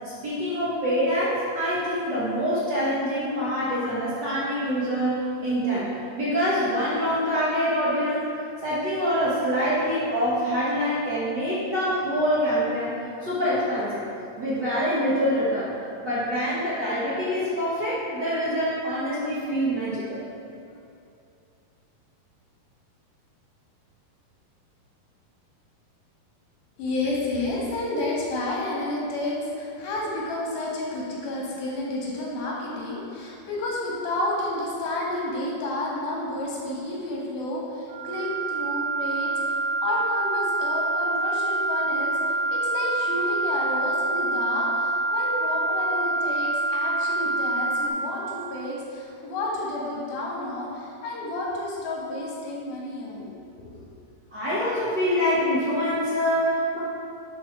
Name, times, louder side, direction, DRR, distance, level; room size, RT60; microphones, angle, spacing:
voice 1, 0.0-8.3 8.6-14.0 14.4-15.7 16.0-20.2 54.3-56.8, equal, 65° right, -10 dB, 1.0 m, -25 dB
voice 2, 26.8-42.2 42.5-53.3, left 2 dB, 70° left, -4 dB, 3.7 m, -30 dB
sound 1, 37.9-47.9, right 2 dB, 90° right, 1.9 m, -26 dB
11.0 x 5.0 x 5.9 m, 2.6 s
omnidirectional pair, 4.4 m